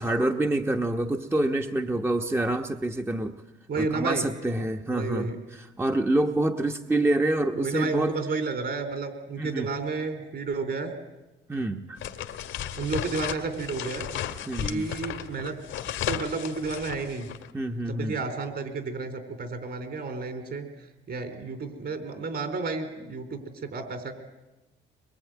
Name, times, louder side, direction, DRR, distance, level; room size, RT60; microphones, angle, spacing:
voice 1, 0.0-3.4 3.8-8.1 9.4-9.7 11.5-12.0 14.5-14.9 17.5-18.2, right 1 dB, 10° right, 4 dB, 1.0 m, -27 dB
voice 2, 3.7-4.2 4.9-5.4 7.5-10.9 12.8-14.1 14.6-15.6 16.1-17.3 17.9-20.7 21.1-24.1, right 4 dB, 55° right, 7 dB, 4.2 m, -31 dB
sound 1, 12.0-17.5, left 10 dB, 80° left, 1.9 m, -34 dB
23.0 x 22.5 x 9.3 m, 1.0 s
cardioid pair, 90°, 20 cm